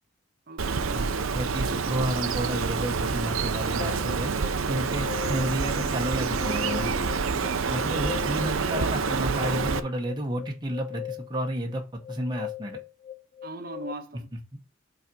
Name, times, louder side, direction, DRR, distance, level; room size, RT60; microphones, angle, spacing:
voice 1, 0.5-1.2 13.4-14.3, right 2 dB, 45° right, 1.0 m, -40 dB
Bird, 0.6-9.8, right 5 dB, 75° right, 0.6 m, -27 dB
voice 2, 1.3-4.3 4.7-6.9 7.7-11.8 12.1-12.8, right 1 dB, 20° right, 0.9 m, -31 dB
sound 1, 3.8-13.9, left 9 dB, 35° left, 0.4 m, -40 dB
5.7 x 4.0 x 5.2 m
head